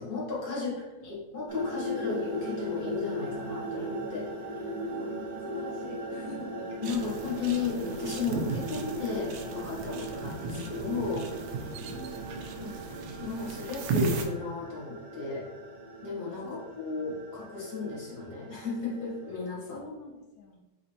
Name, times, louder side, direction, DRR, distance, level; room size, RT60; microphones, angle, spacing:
voice 1, 0.0-0.7 1.0-4.7 6.8-11.3 12.6-12.7 13.2-15.5 16.0-19.8, left 5 dB, 55° left, -5 dB, 1.6 m, -34 dB
voice 2, 0.5-1.1 1.7-2.1 4.9-5.1 5.4-6.7 11.9-12.8 16.4-16.7 16.9-17.0 19.7-20.6, left 2 dB, 85° left, 0 dB, 0.7 m, -46 dB
sound 1, 1.5-19.5, equal, 60° right, 1.1 m, -38 dB
sound 2, 6.8-14.3, right 4 dB, 80° right, 1.4 m, -36 dB
6.2 x 3.1 x 2.7 m, 1.1 s
omnidirectional pair, 2.3 m